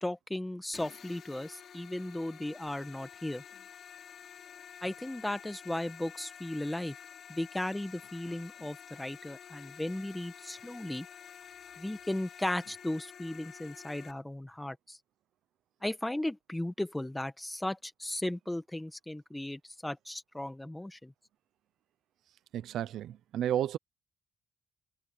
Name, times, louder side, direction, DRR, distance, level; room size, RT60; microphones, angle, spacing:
voice 1, 0.0-3.4 4.8-6.9 7.3-11.0 11.8-15.0 15.8-21.1, left 1 dB, 10° left, 1.4 m, -36 dB
sound 1, 0.7-14.1, left 8 dB, 60° left, 3.6 m, -50 dB
voice 2, 22.5-23.8, right 11 dB, 80° right, 0.8 m, -32 dB
cardioid pair, 90°, 0 cm